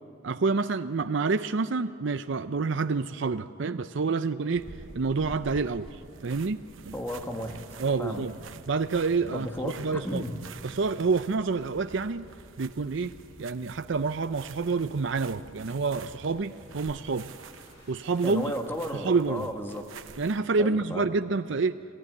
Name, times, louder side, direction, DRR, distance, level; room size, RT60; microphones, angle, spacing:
voice 1, 0.2-6.6 6.9-7.0 7.8-8.3 8.7-10.2 10.6-12.2 12.6-17.3 17.9-18.5 18.9-19.5 20.2-21.8, right 4 dB, 65° right, 10 dB, 0.6 m, -28 dB
sound 1, 4.5-20.4, right 4 dB, 80° right, 0.9 m, -48 dB
sound 2, 6.3-18.4, equal, 65° left, 7.4 m, -57 dB
voice 2, 6.9-7.6 8.0-8.2 9.3-10.3 18.2-19.8 20.6-21.1, equal, 10° left, 3 dB, 1.9 m, -34 dB
27.0 x 16.5 x 9.8 m, 2.4 s
head